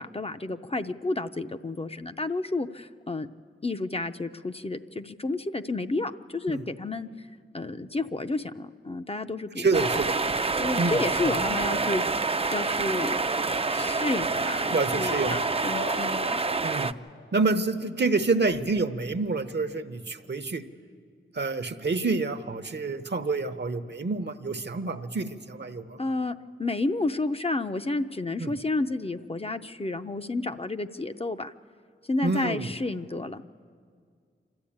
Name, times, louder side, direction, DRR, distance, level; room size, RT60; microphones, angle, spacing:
voice 1, 0.0-3.3 3.6-7.1 7.5-9.9 10.6-13.2 13.7-16.4 26.0-31.5 32.1-33.4, left 2 dB, 30° left, 8 dB, 0.5 m, -31 dB
voice 2, 9.6-10.1 10.8-11.0 14.7-15.4 16.6-16.9 17.3-20.6 21.3-26.0 28.4-28.6 32.2-32.7, right 3 dB, 55° right, 9 dB, 0.9 m, -27 dB
sound 1, 9.7-16.9, right 3 dB, 30° right, 0.4 m, -27 dB
sound 2, 14.7-18.3, left 5 dB, 70° left, 0.7 m, -42 dB
26.5 x 13.0 x 8.7 m, 2.2 s
wide cardioid pair, 85°, 21 cm